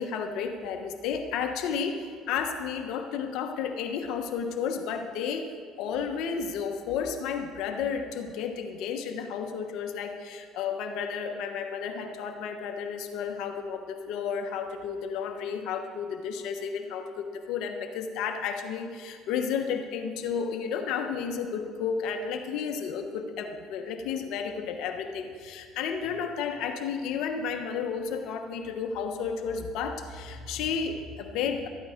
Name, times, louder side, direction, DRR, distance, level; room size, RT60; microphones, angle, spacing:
voice 1, 0.0-31.7, left 6 dB, 75° left, 5 dB, 1.1 m, -32 dB
13.5 x 12.0 x 5.1 m, 2.2 s
supercardioid pair, 95°, 0 cm